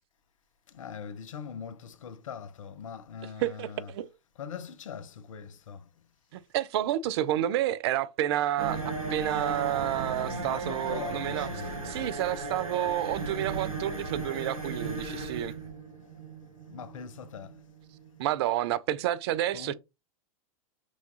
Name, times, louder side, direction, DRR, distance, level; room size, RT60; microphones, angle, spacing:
voice 1, 0.7-3.7 4.4-5.8 10.2-11.7 16.7-17.5 19.5-19.7, left 7 dB, 70° left, 0.6 m, -41 dB
voice 2, 3.2-4.1 6.3-11.5 11.8-15.5 18.2-19.7, right 12 dB, 50° right, 0.4 m, -30 dB
sound 1, 8.6-18.2, right 3 dB, 90° right, 1.2 m, -36 dB
6.1 x 2.3 x 2.7 m
figure-of-eight pair, 95°, 17 cm